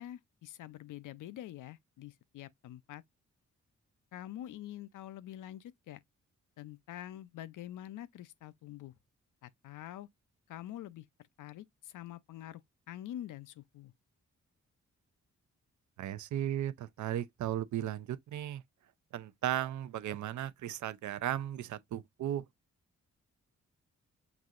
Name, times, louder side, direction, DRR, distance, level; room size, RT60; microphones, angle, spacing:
voice 1, 0.0-3.0 4.1-6.0 6.6-8.9 9.4-10.1 10.5-11.1 11.4-12.6 12.9-13.9, left 12 dB, 85° left, 0.5 m, -46 dB
voice 2, 16.0-18.6 19.1-22.5, right 11 dB, 70° right, 0.5 m, -36 dB
6.0 x 2.7 x 2.4 m
cardioid pair, 75°, 30 cm